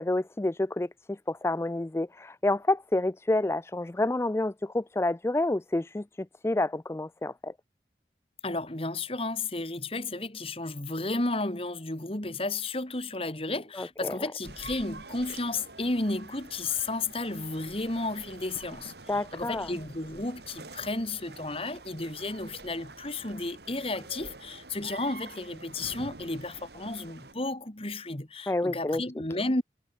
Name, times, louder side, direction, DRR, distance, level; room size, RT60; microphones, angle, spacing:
voice 1, 0.0-7.5 13.7-14.2 19.1-19.7 28.5-29.0, left 2 dB, 15° left, 0.4 m, -29 dB
voice 2, 8.4-29.6, left 2 dB, 30° left, 2.3 m, -33 dB
sound 1, 14.4-27.3, right 3 dB, 60° right, 2.9 m, -47 dB
head